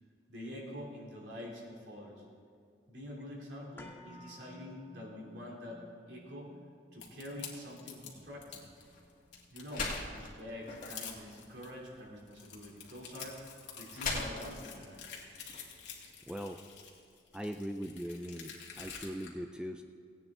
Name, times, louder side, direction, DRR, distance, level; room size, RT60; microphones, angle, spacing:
voice 1, 0.3-2.2 2.9-6.5 6.9-8.6 9.5-13.4 13.7-15.0, left 1 dB, 75° right, -3 dB, 3.0 m, -46 dB
sound 1, 3.8-11.8 12.2-12.3, left 1 dB, 10° left, 0.9 m, -57 dB
sound 2, 7.0-8.7 9.1-9.9 10.4-10.5 10.7-11.7 12.2-19.3, left 7 dB, 85° left, 2.0 m, -48 dB
sound 3, 7.9-16.1, left 3 dB, 45° left, 1.9 m, -43 dB
voice 2, 16.3-16.6 17.3-19.8, equal, 5° right, 5 dB, 0.4 m, -40 dB
17.5 x 9.2 x 3.7 m, 2.3 s
head